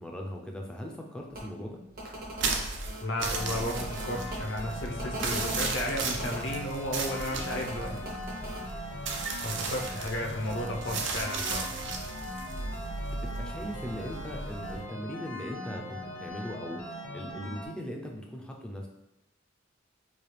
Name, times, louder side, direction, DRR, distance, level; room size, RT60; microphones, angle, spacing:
voice 1, 0.0-1.8 7.9-8.1 12.7-12.8 13.1-18.9, equal, 5° left, 0 dB, 0.5 m, -39 dB
sound 1, 1.3-1.4 1.9-4.4 5.0-6.5 7.5-8.6 9.6-9.8, right 1 dB, 45° right, 0.9 m, -39 dB
sound 2, 2.4-14.8, right 4 dB, 65° right, 0.5 m, -35 dB
voice 2, 3.0-7.9 9.4-11.7, left 1 dB, 65° left, 0 dB, 0.7 m, -33 dB
sound 3, 3.3-17.7, equal, 85° left, 1.1 m, -41 dB
4.8 x 2.3 x 3.2 m, 0.91 s
head